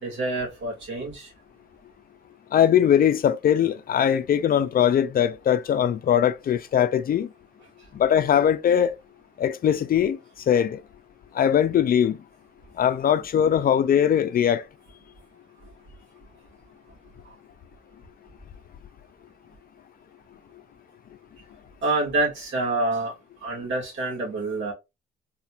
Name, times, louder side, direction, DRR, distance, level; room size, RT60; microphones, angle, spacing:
voice 1, 0.0-1.3 21.8-23.1 23.4-24.7, right 2 dB, 75° right, 2.0 m, -27 dB
voice 2, 2.5-7.3 7.9-9.0 9.4-10.2 10.5-10.8 11.3-12.2 12.8-14.6, left 9 dB, 50° left, 0.4 m, -21 dB
4.0 x 2.8 x 2.4 m
cardioid pair, 90°, 20 cm